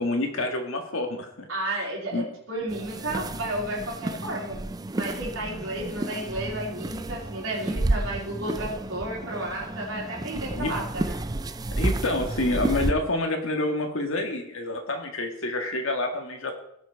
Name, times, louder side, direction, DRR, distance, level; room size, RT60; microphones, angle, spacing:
voice 1, 0.0-1.5 2.1-2.3 10.5-10.7 11.8-16.5, left 2 dB, 70° left, 4 dB, 1.7 m, -28 dB
voice 2, 1.5-11.2, right 1 dB, 70° right, -4 dB, 3.4 m, -32 dB
sound 1, 2.7-12.9, right 2 dB, 20° right, 0.4 m, -31 dB
16.5 x 6.3 x 4.6 m, 0.76 s
head